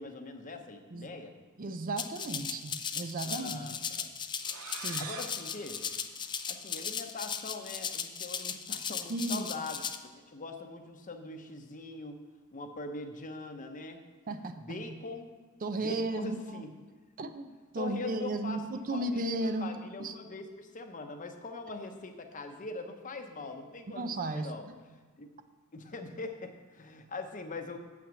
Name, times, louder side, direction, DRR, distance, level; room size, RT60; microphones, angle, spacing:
voice 1, 0.0-1.3 3.2-4.1 5.0-5.9 6.5-12.2 12.5-14.0 14.6-15.3 15.8-16.7 17.8-18.6 18.9-19.2 19.6-24.0 24.3-24.7 25.2-25.3 25.7-27.8, left 3 dB, 35° left, 6 dB, 0.8 m, -42 dB
voice 2, 1.6-3.7 4.7-5.0 9.1-9.5 14.3-15.0 15.6-16.7 17.2-19.7 20.0-20.1 24.0-24.8, right 2 dB, 40° right, 8 dB, 0.5 m, -35 dB
Rattle (instrument), 2.0-10.0, left 7 dB, 20° left, 0.4 m, -37 dB
sound 1, 4.4-7.0, right 6 dB, 75° right, 0.7 m, -47 dB
7.4 x 5.9 x 7.5 m, 1.4 s
head